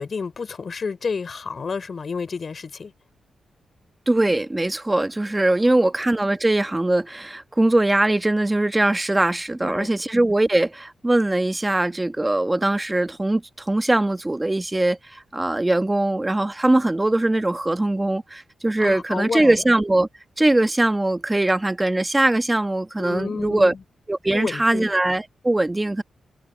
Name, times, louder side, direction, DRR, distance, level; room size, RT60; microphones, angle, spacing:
voice 1, 0.0-2.9 5.6-5.9 9.6-9.9 18.8-19.6 23.0-23.8 24.3-24.9, left 5 dB, 50° left, 3.7 m, -30 dB
voice 2, 4.1-20.1 20.4-23.7 24.1-26.0, right 2 dB, 15° right, 1.3 m, -21 dB
cardioid pair, 85°, 0 cm